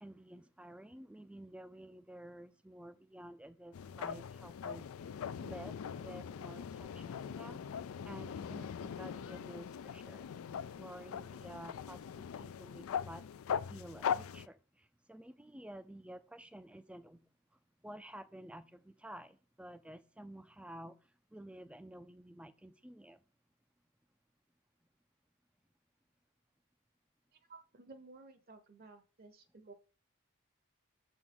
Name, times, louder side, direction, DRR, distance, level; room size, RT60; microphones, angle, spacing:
voice 1, 0.0-4.9 5.4-7.6 8.0-10.3 10.7-13.2 13.7-17.3 17.8-21.0 21.3-23.2, right 1 dB, 5° right, 0.4 m, -51 dB
Porth Oer sand squeaking underfoot, 3.7-14.5, left 7 dB, 85° left, 0.4 m, -41 dB
voice 2, 27.3-29.7, right 3 dB, 45° right, 0.8 m, -55 dB
7.1 x 6.2 x 3.8 m
head